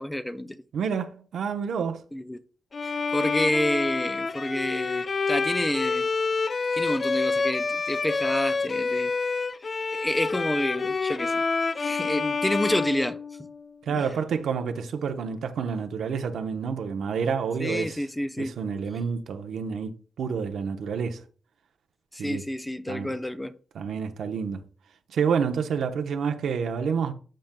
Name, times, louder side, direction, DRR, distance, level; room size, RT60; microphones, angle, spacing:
voice 1, 0.0-0.6 2.1-2.4 2.8-6.1 6.7-9.1 9.9-11.4 11.8-13.2 13.9-14.0 17.6-18.5 22.1-23.5, left 1 dB, 10° left, 0.7 m, -29 dB
voice 2, 0.7-2.0 13.9-18.0 18.4-21.2 22.2-22.4 22.9-23.1 23.7-24.6 25.1-27.1, right 6 dB, 80° right, 0.9 m, -28 dB
Bowed string instrument, 2.7-13.7, left 4 dB, 45° left, 0.4 m, -28 dB
13.0 x 5.2 x 2.3 m
cardioid pair, 75°, 0 cm